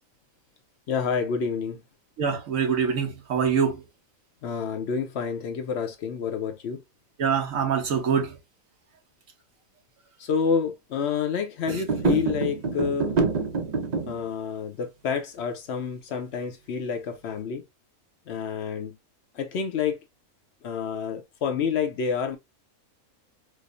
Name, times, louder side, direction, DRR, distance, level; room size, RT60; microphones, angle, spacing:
voice 1, 0.9-1.8 4.4-6.8 10.2-13.2 14.1-17.6 18.3-19.0 19.3-20.0 20.6-22.4, left 6 dB, 60° left, 0.8 m, -28 dB
voice 2, 2.2-3.8 7.2-8.3, right 6 dB, 65° right, 1.3 m, -24 dB
sound 1, 11.7-14.2, right 4 dB, 90° right, 0.3 m, -26 dB
4.8 x 2.0 x 2.5 m
omnidirectional pair, 1.5 m